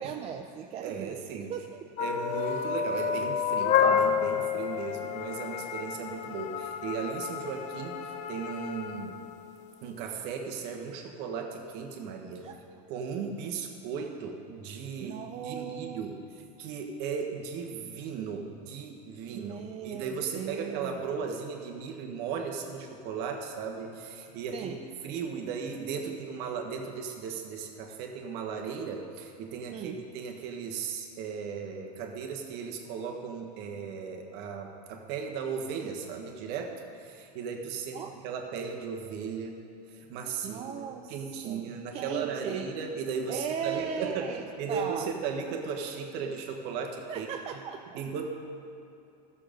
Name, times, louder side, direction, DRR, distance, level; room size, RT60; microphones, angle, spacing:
voice 1, 0.0-1.9 12.4-12.5 15.0-16.0 19.3-21.0 24.5-24.8 29.7-30.0 37.9-38.2 40.4-41.1 41.4-41.7 41.9-42.7 43.3-44.4 44.7-45.1 47.1-48.0, right 8 dB, 30° right, 3 dB, 0.5 m, -37 dB
voice 2, 0.8-1.5 2.0-9.2 9.8-12.5 12.9-16.2 16.6-24.8 25.0-39.6 39.9-47.3 47.5-47.6 47.9-48.3, right 6 dB, 50° right, 2 dB, 1.4 m, -36 dB
sound 1, 2.0-9.5, left 7 dB, 35° left, 0.5 m, -30 dB
13.5 x 6.9 x 5.2 m, 2.7 s
supercardioid pair, 130°, 21 cm